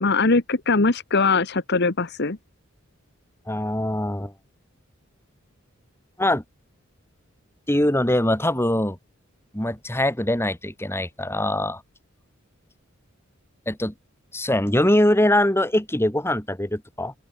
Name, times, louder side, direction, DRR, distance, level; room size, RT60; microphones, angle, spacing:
voice 1, 0.0-2.4, left 3 dB, 55° left, 1.4 m, -21 dB
voice 2, 3.5-4.3 6.2-6.4 7.7-9.0 9.5-11.8 13.7-13.9 14.3-17.1, left 1 dB, 10° left, 2.7 m, -22 dB
open air
head